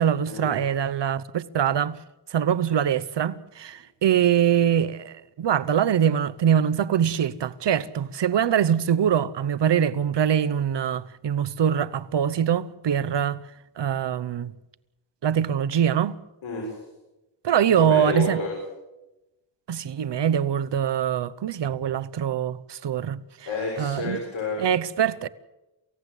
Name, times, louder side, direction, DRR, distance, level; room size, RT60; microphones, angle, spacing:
voice 1, 0.0-2.0 2.3-13.4 13.8-14.5 15.2-16.2 17.4-18.4 19.7-23.2 23.8-24.2 24.6-25.3, right 9 dB, 65° right, 0.9 m, -23 dB
voice 2, 16.4-16.7 17.7-18.5 23.5-24.6, left 3 dB, 80° left, 7.1 m, -29 dB
28.0 x 16.5 x 8.2 m
wide cardioid pair, 120°, 46 cm